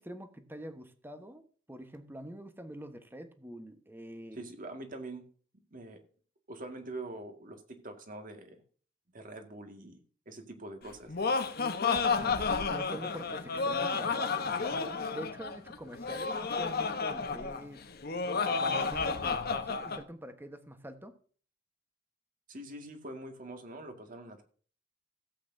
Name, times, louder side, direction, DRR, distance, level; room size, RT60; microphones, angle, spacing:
voice 1, 0.0-4.4 12.1-17.8 18.6-21.1, right 1 dB, 10° right, 8 dB, 1.2 m, -45 dB
voice 2, 4.3-5.3 5.7-6.0 6.5-8.6 9.1-11.1 22.5-24.4, right 2 dB, 45° right, 5 dB, 2.1 m, -44 dB
Laughter, 10.9-20.0, left 4 dB, 55° left, 1.1 m, -31 dB
16.5 x 8.5 x 2.7 m, 0.43 s
head